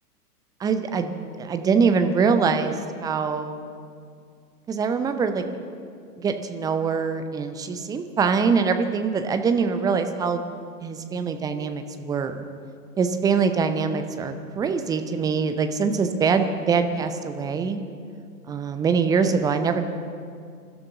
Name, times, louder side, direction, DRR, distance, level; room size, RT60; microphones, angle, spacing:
voice 1, 0.6-1.1 1.4-3.6 4.7-5.4 6.2-10.4 10.8-12.4 13.0-17.8 18.5-19.8, right 5 dB, 10° right, 8 dB, 0.6 m, -23 dB
27.5 x 12.5 x 3.8 m, 2.3 s
figure-of-eight pair, 105°, 46 cm